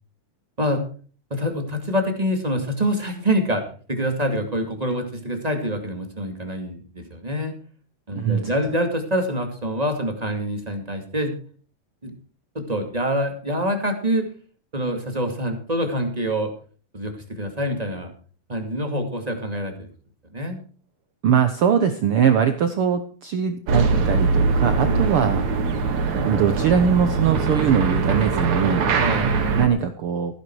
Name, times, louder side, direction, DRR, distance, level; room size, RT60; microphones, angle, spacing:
voice 1, 1.3-3.6 3.9-7.5 8.1-11.3 12.0-12.1 12.5-14.3 14.7-16.5 16.9-18.1 18.5-19.9 20.3-20.6 24.7-25.2 28.9-29.4, equal, 15° right, 4 dB, 1.7 m, -26 dB
voice 2, 8.1-8.4 21.2-25.6 26.2-28.9 29.5-30.4, right 7 dB, 85° right, 9 dB, 1.2 m, -21 dB
sound 1, 23.7-29.7, right 4 dB, 60° right, 2.9 m, -22 dB
15.0 x 10.0 x 4.6 m, 0.41 s
omnidirectional pair, 3.8 m